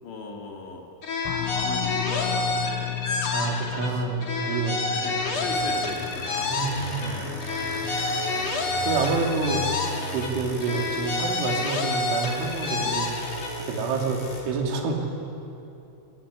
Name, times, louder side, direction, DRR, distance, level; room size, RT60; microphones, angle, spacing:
voice 1, 0.0-0.9 1.3-4.1 4.5-7.5 7.9-8.8, left 4 dB, 65° left, 1 dB, 4.7 m, -39 dB
sound 1, 1.0-3.9 4.2-7.1 7.4-10.3 10.6-13.5, left 3 dB, 40° left, 3.2 m, -29 dB
sound 2, 1.2-7.6, left 15 dB, 85° left, 2.4 m, -35 dB
voice 2, 3.3-4.9 5.2-5.4 6.5-7.1 7.9-8.0 8.9-9.7 10.1-15.1, right 4 dB, 75° right, 1 dB, 5.3 m, -28 dB
sound 3, 5.1-14.4, left 1 dB, 10° left, 6.4 m, -36 dB
24.0 x 22.5 x 10.0 m, 2.7 s
omnidirectional pair, 5.6 m